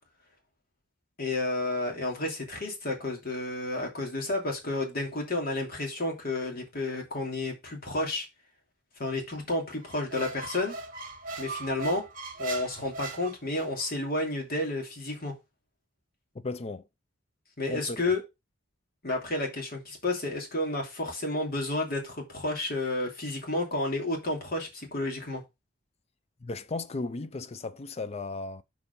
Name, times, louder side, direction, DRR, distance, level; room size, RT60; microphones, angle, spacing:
voice 1, 1.2-8.3 9.0-10.8 11.4-12.1 12.4-15.3 17.6-18.2 19.0-25.4, left 2 dB, 50° left, 2.7 m, -31 dB
Squeak, 9.8-13.9, right 3 dB, 45° right, 2.0 m, -40 dB
voice 2, 16.3-16.9 17.7-18.0 26.4-28.6, left 3 dB, 35° left, 0.5 m, -35 dB
6.9 x 4.6 x 5.3 m
head